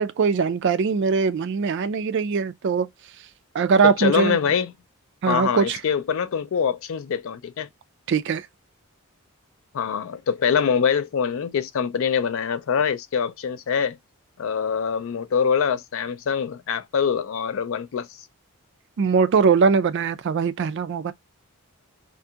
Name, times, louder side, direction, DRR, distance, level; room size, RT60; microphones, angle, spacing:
voice 1, 0.0-2.9 3.5-4.4 5.2-5.8 8.1-8.5 19.0-21.1, right 5 dB, 55° right, 0.3 m, -21 dB
voice 2, 3.8-4.7 5.3-7.7 9.7-14.0 14.4-18.1, left 7 dB, 60° left, 0.3 m, -24 dB
2.7 x 2.5 x 2.3 m
head